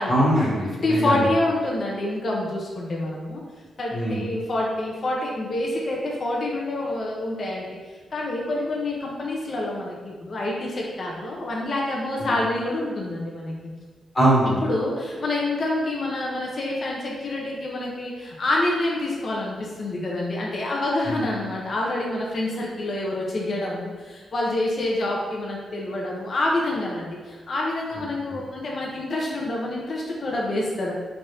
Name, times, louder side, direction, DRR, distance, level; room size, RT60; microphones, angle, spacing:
voice 1, 0.1-1.2 3.9-4.2 12.2-12.3 14.1-14.6 21.1-21.2, right 1 dB, 30° left, -8 dB, 1.2 m, -21 dB
voice 2, 0.8-3.4 3.8-7.8 8.1-13.8 14.6-30.9, left 2 dB, 45° left, -3 dB, 0.6 m, -27 dB
3.3 x 2.5 x 4.1 m, 1.4 s
cardioid pair, 105°, 0 cm